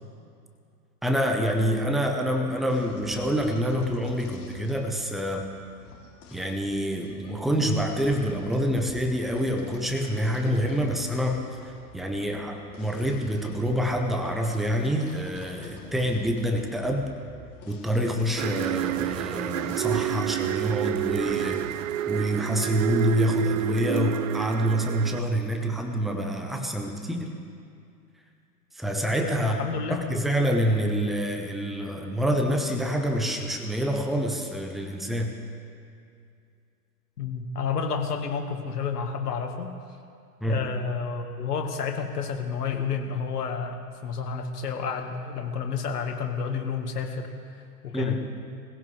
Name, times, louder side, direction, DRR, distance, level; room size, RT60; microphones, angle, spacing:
voice 1, 1.0-5.5 6.3-11.4 11.9-17.1 17.7-21.7 22.1-27.3 28.8-29.6 29.9-35.3 40.4-40.7 47.9-48.2, equal, ahead, 3 dB, 1.0 m, -26 dB
sound 1, 2.7-21.8, left 3 dB, 30° left, 3.2 m, -48 dB
sound 2, 18.4-25.2, right 13 dB, 55° right, 0.5 m, -29 dB
voice 2, 29.3-30.0 37.2-39.7 40.4-47.3 47.8-48.3, left 6 dB, 70° left, 4 dB, 1.8 m, -30 dB
21.0 x 16.0 x 3.4 m, 2.4 s
figure-of-eight pair, 100°, 49 cm